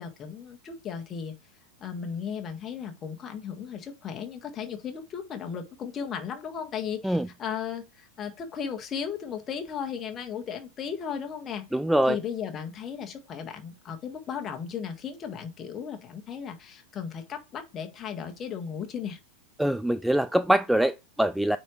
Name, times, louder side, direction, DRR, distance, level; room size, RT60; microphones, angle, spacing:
voice 1, 0.0-1.4 1.8-11.7 12.1-19.2, left 7 dB, 25° left, 1.7 m, -36 dB
voice 2, 11.7-12.2 19.6-21.6, right 1 dB, ahead, 0.3 m, -23 dB
9.2 x 4.5 x 3.2 m
figure-of-eight pair, 90°, 0 cm